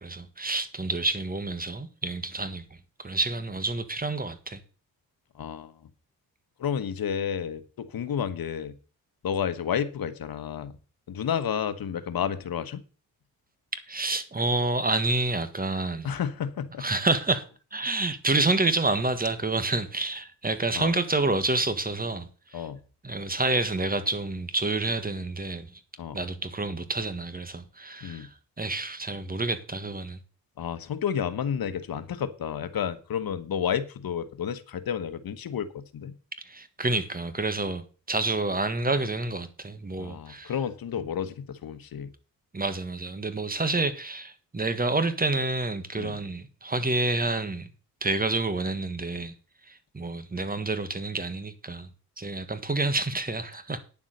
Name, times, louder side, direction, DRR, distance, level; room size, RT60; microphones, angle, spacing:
voice 1, 0.0-2.6 3.0-4.6 13.9-16.1 16.8-22.7 23.0-25.8 26.1-30.2 36.4-40.5 42.5-47.7 48.0-49.3 49.7-51.9 52.2-53.9, right 2 dB, 25° right, 1.6 m, -28 dB
voice 2, 5.4-5.7 6.6-8.7 9.2-10.7 11.1-12.8 16.0-16.8 20.7-20.9 22.5-22.8 26.0-26.2 28.0-28.3 30.6-36.1 40.0-42.1 46.0-46.2, left 8 dB, 65° left, 1.3 m, -31 dB
9.8 x 7.3 x 6.6 m
cardioid pair, 75°, 38 cm